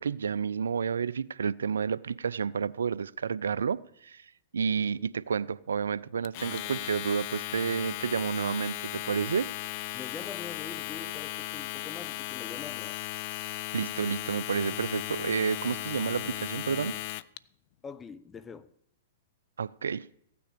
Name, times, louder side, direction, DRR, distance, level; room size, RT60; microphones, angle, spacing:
voice 1, 0.0-4.3 4.5-9.5 13.7-17.0 19.6-20.0, right 6 dB, 80° right, 0.4 m, -30 dB
voice 2, 4.7-5.1 9.9-13.0 17.8-18.7, left 5 dB, 15° left, 0.7 m, -44 dB
Domestic sounds home sounds, 6.2-17.4, left 18 dB, 50° left, 0.4 m, -36 dB
15.5 x 9.3 x 5.1 m
hypercardioid pair, 120°, 0 cm